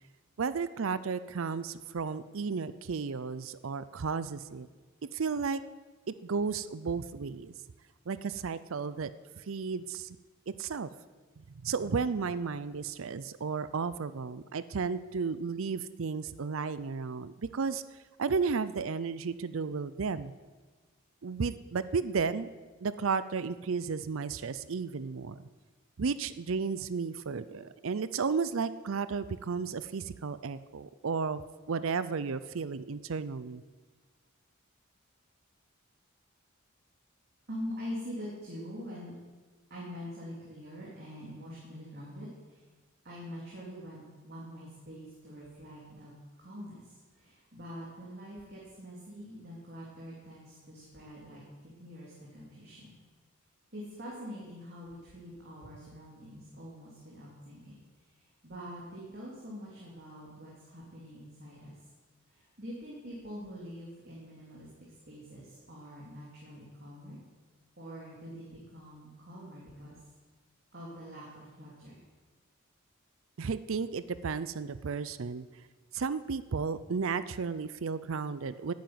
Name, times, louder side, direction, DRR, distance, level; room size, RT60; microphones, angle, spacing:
voice 1, 0.4-4.7 5.1-5.6 6.2-7.5 8.1-9.1 9.4-10.2 10.5-10.9 11.6-17.8 18.2-20.3 21.2-22.5 22.8-25.5 26.0-31.4 31.7-33.6 73.4-75.5 75.9-78.7, right 5 dB, 65° right, 14 dB, 0.5 m, -33 dB
voice 2, 37.5-39.1 39.7-42.6 43.0-46.1 46.4-51.4 51.8-52.9 53.7-61.7 62.3-64.7 65.1-67.2 67.8-69.9 70.7-72.0, equal, 45° right, -5 dB, 3.2 m, -45 dB
10.5 x 9.2 x 9.5 m, 1.3 s
head